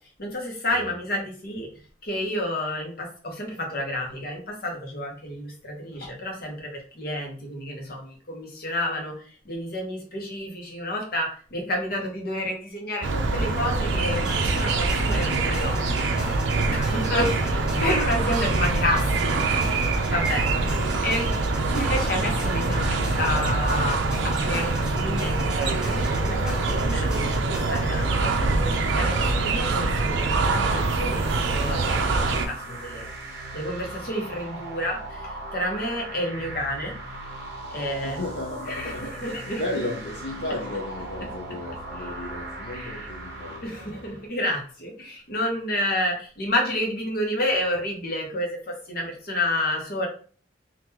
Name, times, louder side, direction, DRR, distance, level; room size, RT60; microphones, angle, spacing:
voice 1, 0.2-1.7 2.0-9.1 9.4-16.1 16.7-17.3 17.8-19.3 19.8-20.8 21.0-21.3 21.7-24.0 24.4-33.1 33.5-37.0 37.7-38.2 38.7-38.9 39.2-39.6 43.6-50.1, left 1 dB, 50° left, 1 dB, 1.0 m, -30 dB
sound 1, 13.0-32.5, right 3 dB, 75° right, 0.5 m, -24 dB
sound 2, 14.2-28.0, equal, 5° right, 0.8 m, -40 dB
sound 3, 30.8-44.3, right 2 dB, 55° right, 0.9 m, -38 dB
voice 2, 38.0-44.2, left 2 dB, 65° left, -2 dB, 0.6 m, -34 dB
3.6 x 2.5 x 2.9 m, 0.43 s
head